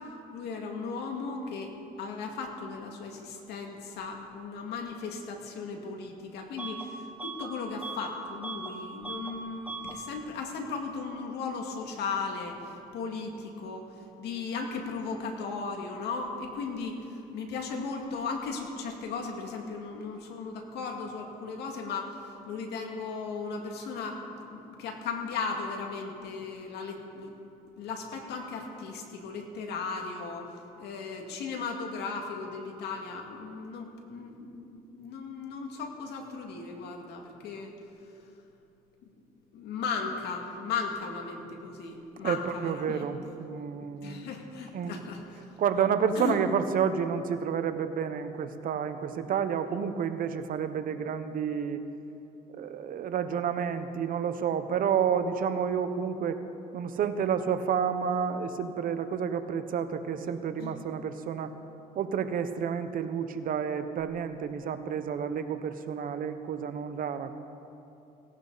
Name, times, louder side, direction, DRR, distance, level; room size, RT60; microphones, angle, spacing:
voice 1, 0.3-1.7 2.0-27.4 27.8-30.5 30.8-37.7 39.5-43.1 44.0-45.5 45.8-45.9 46.2-46.4 51.0-51.1 60.6-60.7, left 4 dB, 75° left, 2 dB, 2.2 m, -36 dB
Bus / Alarm, 6.6-6.9 7.2-8.8 9.0-9.4 9.6-10.0, right 3 dB, 10° right, 1.2 m, -39 dB
voice 2, 42.2-44.3 44.7-45.1 45.4-51.8 52.5-56.4 56.7-61.5 61.9-67.4, right 7 dB, 55° right, 9 dB, 1.0 m, -30 dB
18.0 x 17.5 x 4.1 m, 2.8 s
cardioid pair, 110°, 17 cm